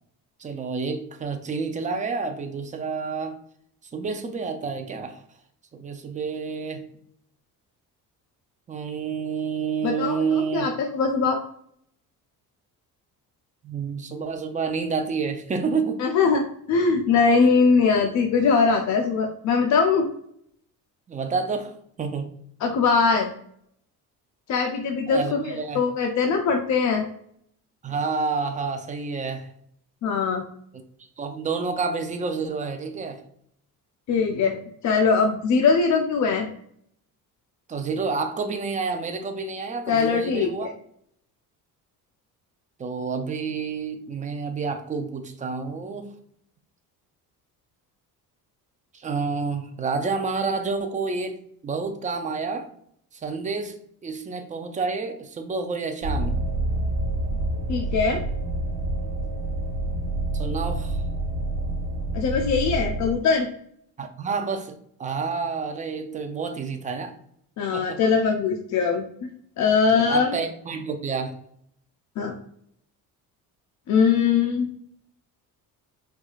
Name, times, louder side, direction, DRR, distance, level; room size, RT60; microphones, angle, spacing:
voice 1, 0.4-3.4 3.9-5.2 5.7-6.8 8.7-10.7 13.6-16.0 21.1-22.4 25.1-25.8 27.8-29.5 31.2-33.2 37.7-40.7 42.8-46.1 48.9-51.4 51.6-52.7 53.2-53.8 54.0-56.3 60.3-61.0 64.0-64.7 65.0-67.1 67.7-68.0 69.9-71.3, right 4 dB, 20° right, 6 dB, 0.4 m, -29 dB
voice 2, 9.8-11.4 16.0-16.4 16.7-20.1 22.6-23.3 24.5-27.1 30.0-30.4 34.1-34.6 34.8-36.5 39.9-40.7 57.7-58.2 62.1-63.5 67.6-69.0 69.6-70.3 72.2-72.3 73.9-74.7, left 5 dB, 50° left, 2 dB, 0.5 m, -21 dB
sound 1, 56.0-63.1, right 1 dB, 65° right, 1.2 m, -27 dB
4.4 x 2.4 x 2.4 m, 0.67 s
cardioid pair, 120°, 37 cm